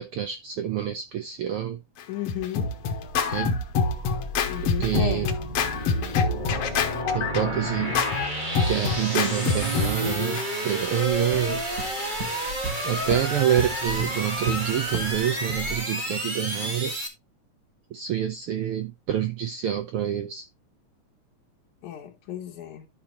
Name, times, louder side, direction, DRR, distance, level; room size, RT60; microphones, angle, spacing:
voice 1, 0.0-1.8 3.3-3.6 4.8-5.3 7.1-8.0 8.7-11.6 12.8-16.9 17.9-20.5, right 10 dB, 90° right, 1.2 m, -27 dB
Scratching (performance technique), 2.0-10.5, left 5 dB, 65° left, 2.0 m, -26 dB
voice 2, 2.1-2.7 4.5-5.3 21.8-22.9, left 10 dB, 80° left, 2.5 m, -34 dB
sound 1, 3.2-17.1, equal, 25° right, 1.1 m, -31 dB
sound 2, 11.3-15.2 15.5-15.8, right 4 dB, 50° right, 1.1 m, -34 dB
11.5 x 5.7 x 2.9 m
omnidirectional pair, 3.4 m